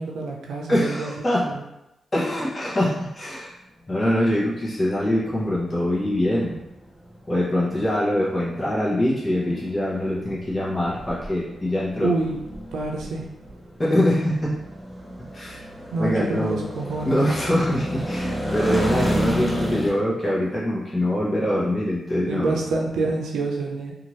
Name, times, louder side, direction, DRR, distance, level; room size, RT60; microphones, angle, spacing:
voice 1, 0.0-1.1 1.4-1.6 12.0-12.4 12.7-13.2 15.9-17.2 22.3-23.9, right 3 dB, 85° right, -1 dB, 0.6 m, -27 dB
voice 2, 0.7-1.5 2.1-3.5 3.9-6.6 7.3-12.1 13.8-14.6 15.3-15.6 16.0-16.6 17.0-22.6, left 1 dB, 30° left, -7 dB, 0.9 m, -23 dB
sound 1, 3.8-19.9, equal, 5° right, 0.8 m, -32 dB
2.7 x 2.5 x 3.1 m, 0.91 s
cardioid pair, 65°, 0 cm